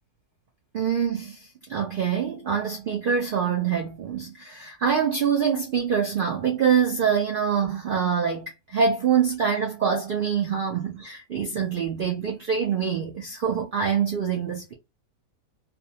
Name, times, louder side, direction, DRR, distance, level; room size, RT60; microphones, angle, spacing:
voice 1, 0.7-14.7, right 7 dB, 70° right, 0.5 m, -25 dB
2.5 x 2.3 x 2.7 m
omnidirectional pair, 1.6 m